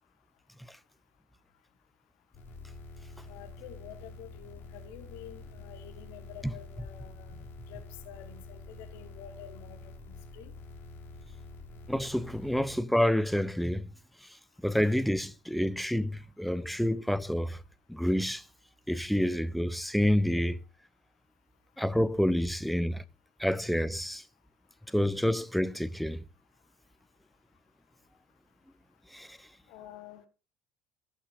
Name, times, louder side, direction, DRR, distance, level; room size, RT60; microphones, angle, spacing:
sound 1, 2.3-12.8, left 3 dB, 45° left, 2.7 m, -47 dB
voice 1, 3.3-7.4 7.7-10.5 29.7-30.2, left 11 dB, 60° left, 1.4 m, -49 dB
voice 2, 11.9-13.9 14.6-17.6 17.9-18.4 18.9-20.6 21.8-23.0 23.4-24.2 24.9-26.2 29.1-29.4, equal, ahead, 0.5 m, -28 dB
14.0 x 5.7 x 2.6 m
figure-of-eight pair, 65°, 5 cm